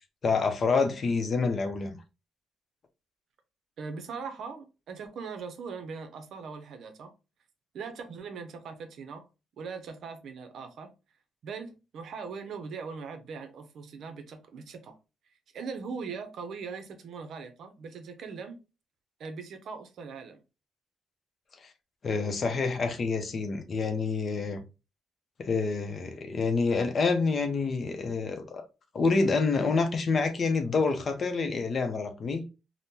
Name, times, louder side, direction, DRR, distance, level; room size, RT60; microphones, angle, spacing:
voice 1, 0.2-2.0 21.6-21.7 22.0-24.6 25.4-28.6 28.9-32.5, left 4 dB, 45° left, 0.6 m, -27 dB
voice 2, 3.8-7.1 7.7-9.2 9.6-10.9 11.4-15.0 15.5-18.6 19.2-20.4, right 5 dB, 70° right, 0.6 m, -40 dB
3.6 x 2.1 x 2.7 m
cardioid pair, 90°, 0 cm